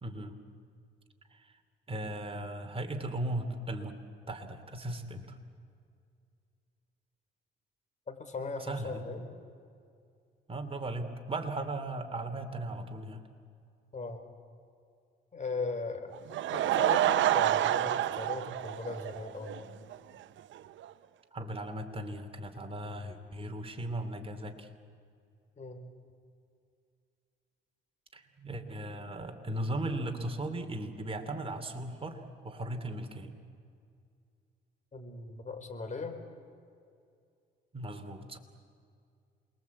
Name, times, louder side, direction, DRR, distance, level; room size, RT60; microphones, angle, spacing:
voice 1, 0.0-0.4 1.3-1.5 1.9-3.9 4.3-5.4 8.7-9.0 10.5-13.2 21.3-24.7 28.1-33.3 37.7-38.4, right 1 dB, 30° right, 6 dB, 2.9 m, -37 dB
voice 2, 8.1-9.3 13.9-14.2 15.3-16.2 16.5-19.7 25.6-25.8 34.9-36.2, left 4 dB, 35° left, 6 dB, 4.0 m, -38 dB
Laughter / Crowd, 16.1-19.6 19.9-20.0 20.6-20.7 20.8-20.9, right 12 dB, 70° right, 0.7 m, -28 dB
28.0 x 22.0 x 8.4 m, 2.3 s
cardioid pair, 90°, 20 cm